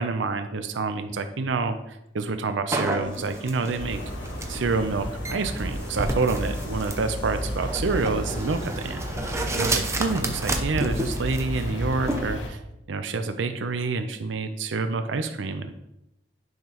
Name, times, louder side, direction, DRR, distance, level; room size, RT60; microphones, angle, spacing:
voice 1, 0.0-4.0 4.5-9.0 9.5-12.6 12.9-15.7, right 4 dB, 80° right, 9 dB, 0.6 m, -28 dB
sound 1, 2.7-12.2, right 2 dB, 15° right, 0.7 m, -31 dB
sound 2, 2.8-9.8, equal, 25° left, 1.5 m, -45 dB
sound 3, 3.8-12.5, equal, 85° left, 1.2 m, -33 dB
10.5 x 5.8 x 2.9 m, 0.85 s
head